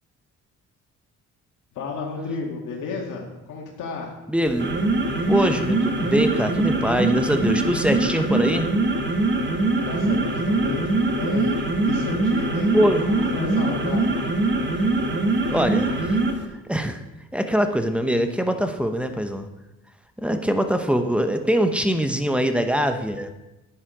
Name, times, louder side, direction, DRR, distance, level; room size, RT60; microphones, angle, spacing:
voice 1, 1.7-4.2 9.8-11.5 11.8-12.7 13.1-14.2, left 4 dB, 80° left, -1 dB, 2.0 m, -32 dB
voice 2, 4.3-4.8 5.3-8.7 12.7-13.1 15.5-16.2 16.7-17.0 17.3-19.5 20.2-23.3, equal, 5° right, 7 dB, 0.9 m, -23 dB
sound 1, 4.5-16.5, right 2 dB, 35° right, 1.5 m, -23 dB
9.9 x 8.9 x 4.9 m, 1.0 s
cardioid pair, 90°, 30 cm